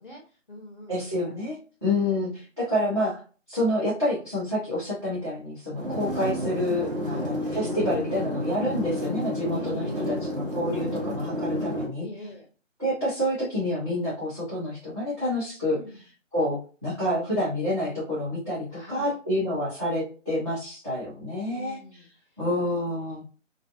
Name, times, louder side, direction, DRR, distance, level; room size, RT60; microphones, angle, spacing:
voice 1, 0.0-1.1 1.9-2.3 7.0-7.4 9.5-10.2 12.0-12.4 15.7-16.0 18.7-19.2 21.4-22.4, left 1 dB, 45° left, 0 dB, 0.5 m, -44 dB
voice 2, 0.9-3.2 3.5-12.1 12.8-15.8 16.3-22.0 22.4-23.2, left 1 dB, 20° right, -11 dB, 0.6 m, -28 dB
sound 1, 5.7-11.9, left 1 dB, 45° right, 1.2 m, -30 dB
2.5 x 2.1 x 2.5 m, 0.37 s
figure-of-eight pair, 165°, 39 cm